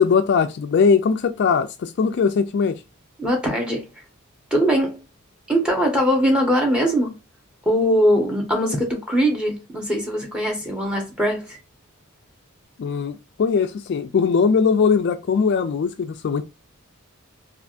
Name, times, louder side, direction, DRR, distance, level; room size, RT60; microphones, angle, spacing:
voice 1, 0.0-2.8 12.8-16.4, left 5 dB, 50° left, 0.3 m, -20 dB
voice 2, 3.2-3.8 4.5-5.0 5.5-7.1 7.6-11.6, equal, 5° right, 1.0 m, -21 dB
3.4 x 2.5 x 2.4 m
head